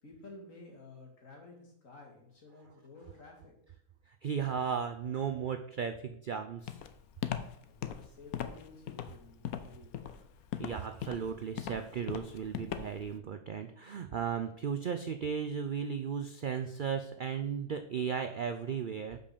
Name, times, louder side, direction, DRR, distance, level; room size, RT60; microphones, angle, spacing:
voice 1, 0.0-3.5 7.7-10.2, left 3 dB, 60° left, 0 dB, 2.4 m, -53 dB
voice 2, 4.2-6.8 10.6-19.2, right 7 dB, 90° right, 7 dB, 0.4 m, -35 dB
Walk footsteps, 6.7-13.1, left 9 dB, 80° left, 1.1 m, -39 dB
5.5 x 5.2 x 6.7 m, 0.70 s
omnidirectional pair, 1.5 m